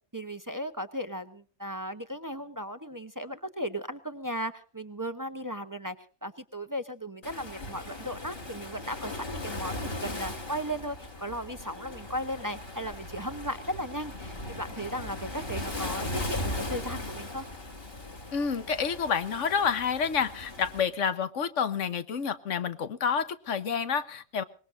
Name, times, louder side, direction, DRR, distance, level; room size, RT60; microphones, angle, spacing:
voice 1, 0.1-6.0 6.2-17.4, equal, 20° right, 9 dB, 0.8 m, -36 dB
Waves surf, 7.2-20.8, left 1 dB, 50° left, 2.9 m, -38 dB
voice 2, 18.3-24.4, left 6 dB, 90° left, 11 dB, 1.4 m, -29 dB
23.5 x 20.5 x 2.6 m, 0.43 s
omnidirectional pair, 1.2 m